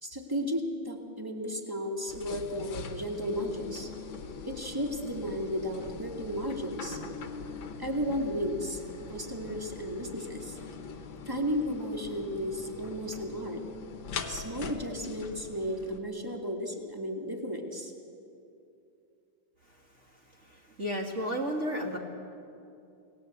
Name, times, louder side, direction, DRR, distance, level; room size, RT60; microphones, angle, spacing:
voice 1, 0.0-3.9 4.5-7.0 7.8-8.8 9.1-10.6 11.2-13.6 14.3-17.9, equal, 10° right, 2 dB, 2.2 m, -34 dB
sound 1, 2.1-16.0, left 4 dB, 60° left, 1.9 m, -42 dB
voice 2, 19.7-22.0, equal, 35° right, 1 dB, 2.2 m, -34 dB
29.0 x 19.0 x 8.0 m, 2.6 s
omnidirectional pair, 2.4 m